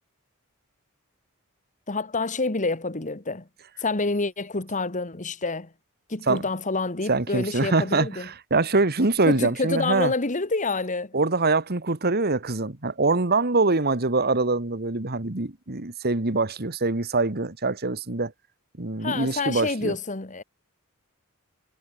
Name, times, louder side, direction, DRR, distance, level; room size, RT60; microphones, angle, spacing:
voice 1, 1.9-3.5 3.8-5.7 6.1-8.3 9.3-11.1 19.0-20.4, left 3 dB, 35° left, 1.7 m, -28 dB
voice 2, 7.1-10.1 11.1-18.3 18.8-19.9, right 3 dB, 45° right, 1.8 m, -24 dB
head